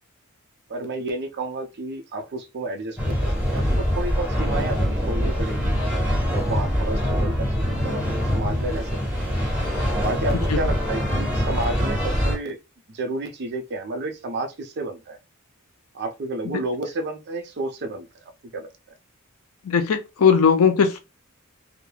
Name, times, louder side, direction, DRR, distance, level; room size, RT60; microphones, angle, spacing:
voice 1, 0.7-5.7 6.3-8.0 8.3-9.2 10.0-12.6 12.9-15.2 15.9-18.1 18.5-18.7, right 2 dB, 50° right, 0.5 m, -31 dB
sound 1, 3.0-12.4, equal, 5° right, 1.4 m, -24 dB
voice 2, 19.6-21.0, left 6 dB, 80° left, 0.5 m, -18 dB
2.3 x 2.0 x 3.1 m
head